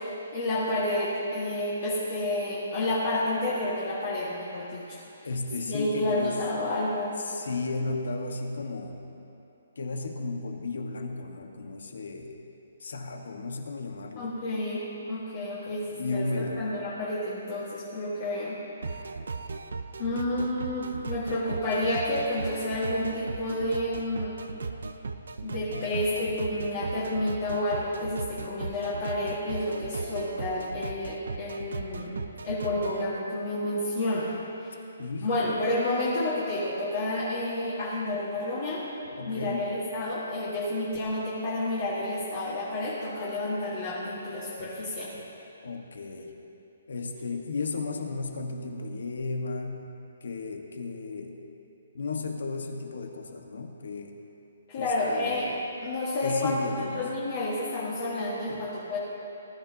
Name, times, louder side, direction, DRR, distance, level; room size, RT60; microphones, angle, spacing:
voice 1, 0.0-5.0 5.6-7.2 14.2-15.9 16.1-16.3 16.6-18.6 20.0-24.3 25.4-34.3 34.6-34.7 35.2-38.8 39.2-45.1 54.7-55.5 55.8-59.0, left 1 dB, 35° left, -8 dB, 1.9 m, -30 dB
voice 2, 5.2-6.4 7.2-9.1 9.7-12.4 12.8-14.3 15.9-16.6 25.5-25.9 35.0-35.5 39.1-39.7 45.6-46.4 46.9-49.9 50.2-51.4 51.9-54.2 54.7-55.6 56.2-57.1 58.5-58.7, left 3 dB, 75° left, 3 dB, 1.5 m, -34 dB
sound 1, 18.8-33.0, right 4 dB, 80° right, 0.7 m, -37 dB
19.5 x 12.5 x 2.9 m, 2.9 s
hypercardioid pair, 175°, 0 cm